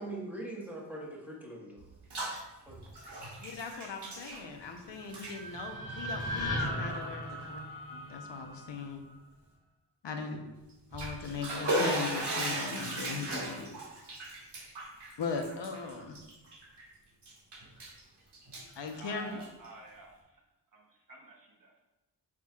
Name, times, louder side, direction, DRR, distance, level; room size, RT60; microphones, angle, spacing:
voice 1, 0.0-1.9 2.6-2.8 3.1-3.2 4.8-5.0, right 2 dB, 5° right, -4 dB, 1.5 m, -42 dB
Bathtub (filling or washing), 1.8-2.4 2.7-4.8 5.0-5.3 6.1-6.2 6.9-7.0 7.4-7.5 10.7-16.8 17.2-18.0 18.3-19.7, right 1 dB, 70° right, 2.0 m, -36 dB
voice 2, 3.4-7.6 7.9-9.0 10.0-10.4 10.9-13.7 15.2-16.2 18.8-19.4, left 4 dB, 80° left, 3 dB, 1.0 m, -39 dB
sound 1, 4.8-9.0, left 1 dB, 30° left, 1.9 m, -37 dB
voice 3, 19.0-20.2 20.7-21.8, right 2 dB, 50° right, 0 dB, 1.2 m, -50 dB
8.5 x 6.2 x 2.4 m, 1.0 s
wide cardioid pair, 165°, 42 cm